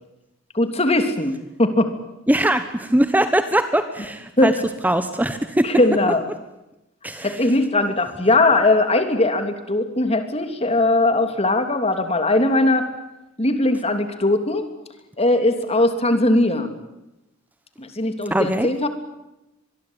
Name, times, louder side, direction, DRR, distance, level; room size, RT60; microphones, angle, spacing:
voice 1, 0.5-1.9 4.4-4.5 5.6-6.2 7.2-12.9 13.4-14.7 15.2-16.7 17.8-18.9, left 2 dB, 30° left, 8 dB, 3.2 m, -19 dB
voice 2, 2.3-4.5 4.8-5.7 7.0-7.4 18.3-18.7, right 1 dB, 10° right, 9 dB, 1.3 m, -21 dB
25.0 x 22.0 x 9.0 m, 0.94 s
head